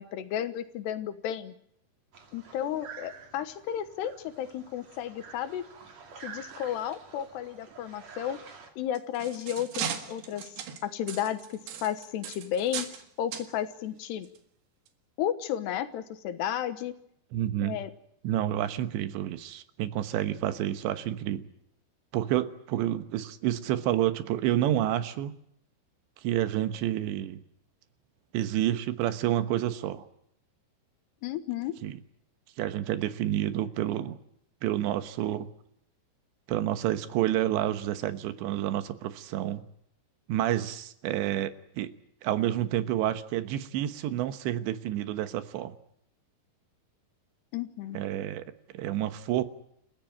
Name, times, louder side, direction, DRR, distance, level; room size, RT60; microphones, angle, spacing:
voice 1, 0.0-1.5 2.3-5.7 6.2-8.4 8.8-10.5 10.8-12.9 13.2-14.3 15.2-16.9 17.6-17.9 31.2-31.8 47.5-48.0, left 10 dB, 75° left, 11 dB, 3.3 m, -33 dB
sound 1, 2.1-8.7, right 6 dB, 45° right, 3.4 m, -49 dB
sound 2, 8.8-13.0 13.3-13.5 14.2-14.4 14.9-15.0, right 8 dB, 70° right, 3.7 m, -37 dB
voice 2, 17.3-17.8 18.2-21.5 22.1-25.4 26.2-27.4 28.3-30.1 31.8-31.9 32.6-34.2 34.6-35.5 36.5-39.7 40.3-41.9 42.2-45.8 47.9-48.5 48.7-49.4, right 12 dB, 85° right, 11 dB, 3.5 m, -29 dB
29.0 x 15.0 x 9.0 m, 0.74 s
omnidirectional pair, 5.0 m